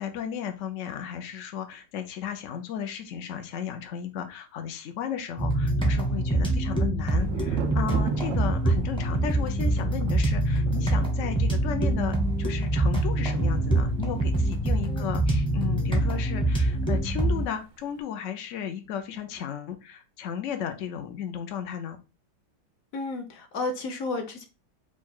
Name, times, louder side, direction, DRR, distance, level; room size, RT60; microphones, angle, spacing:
voice 1, 0.0-22.0, left 8 dB, 75° left, 6 dB, 0.7 m, -34 dB
sound 1, 5.4-17.4, right 1 dB, 5° left, 0.5 m, -25 dB
Thunder, 7.2-16.8 17.1-17.8, right 7 dB, 75° right, 0.7 m, -39 dB
voice 2, 22.9-24.5, left 3 dB, 55° left, 4 dB, 1.2 m, -32 dB
4.6 x 2.3 x 4.3 m, 0.30 s
omnidirectional pair, 2.0 m